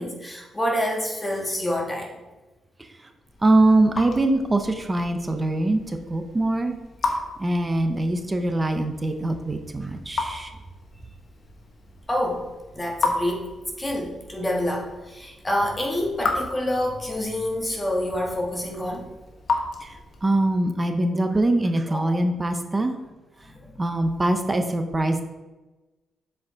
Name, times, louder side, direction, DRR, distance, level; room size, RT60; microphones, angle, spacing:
voice 1, 0.0-2.1 12.1-12.4 12.7-13.5 13.8-19.0 21.9-22.1 23.4-23.8, left 1 dB, 15° left, -1 dB, 1.4 m, -27 dB
Raindrop / Drip, 3.2-20.4, left 3 dB, 50° left, 1.1 m, -35 dB
voice 2, 3.4-6.7 7.4-10.5 19.8-19.9 20.2-22.9 23.8-25.2, right 2 dB, 20° right, 6 dB, 0.5 m, -23 dB
7.5 x 4.6 x 3.6 m, 1.1 s
cardioid pair, 115°, 0 cm